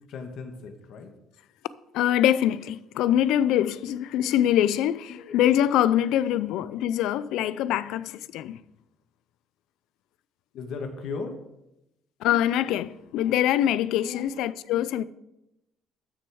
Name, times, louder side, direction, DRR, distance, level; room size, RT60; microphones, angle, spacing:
voice 1, 0.1-1.1 3.8-4.4 5.2-5.3 6.1-6.4 10.5-11.4 13.2-13.4 14.0-14.6, left 4 dB, 55° left, 1.3 m, -38 dB
voice 2, 1.9-8.6 12.2-15.0, left 11 dB, 85° left, 0.4 m, -24 dB
13.0 x 6.4 x 4.8 m
cardioid pair, 180°, 0 cm